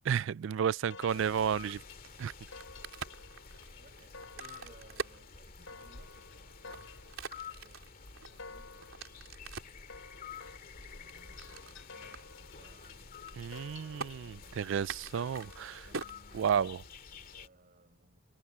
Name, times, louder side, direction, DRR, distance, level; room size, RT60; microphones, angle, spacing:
voice 1, 0.0-1.8 2.2-2.3 13.3-15.9 16.3-16.8, right 8 dB, 65° right, 0.3 m, -32 dB
sound 1, 0.9-15.9, left 4 dB, 75° left, 7.5 m, -53 dB
sound 2, 1.1-17.5, left 5 dB, 45° left, 2.2 m, -51 dB
voice 2, 2.1-2.4 3.8-6.9 7.3-10.1 11.0-16.5 17.1-18.2, right 2 dB, 45° right, 5.9 m, -63 dB
Crack, 2.4-6.0 6.5-9.8 10.4-11.8 12.1-12.2 12.5-12.9 13.1-13.7 14.0-14.1 14.8-17.0, right 4 dB, 80° right, 3.7 m, -44 dB
head